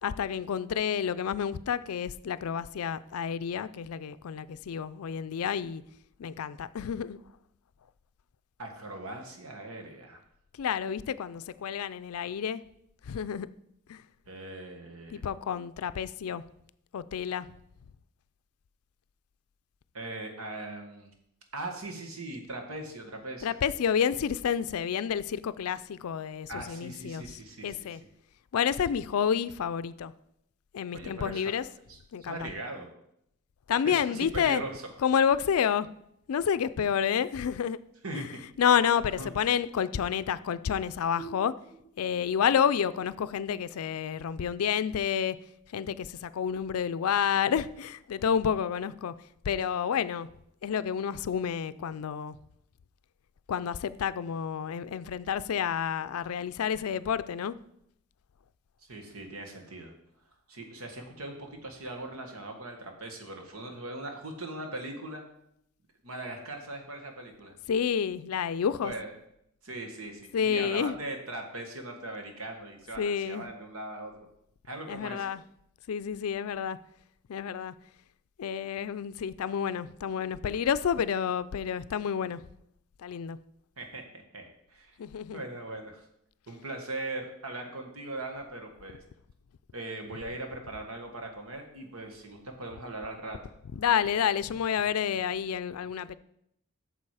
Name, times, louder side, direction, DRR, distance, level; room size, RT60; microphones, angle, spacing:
voice 1, 0.0-5.8 6.2-7.2 10.6-12.6 13.0-13.5 13.9-14.0 15.1-16.4 16.9-17.5 23.4-28.0 28.5-30.1 30.7-31.6 32.1-32.5 33.7-34.6 35.0-35.9 36.3-37.8 38.1-38.3 38.6-41.6 42.0-45.4 45.7-49.1 49.4-50.3 50.6-52.4 53.5-57.6 67.7-68.9 70.3-71.0 73.0-73.5 74.9-75.4 75.9-76.8 77.3-77.7 78.4-82.4 83.0-83.4 85.0-85.5 93.7-96.2, left 8 dB, 90° left, 0.4 m, -29 dB
voice 2, 8.6-10.2 14.3-15.2 19.9-21.1 21.5-23.6 26.5-27.8 30.9-31.5 31.9-32.9 33.8-34.8 38.0-38.4 39.2-39.3 58.9-59.9 60.5-65.2 66.0-67.5 68.8-69.1 69.6-74.3 74.6-75.3 83.8-85.0 85.3-86.0 86.5-89.0 89.7-93.4, right 2 dB, 85° right, 1.6 m, -40 dB
sound 1, 41.2-44.6, right 4 dB, 15° right, 4.0 m, -50 dB
8.7 x 6.7 x 4.8 m
head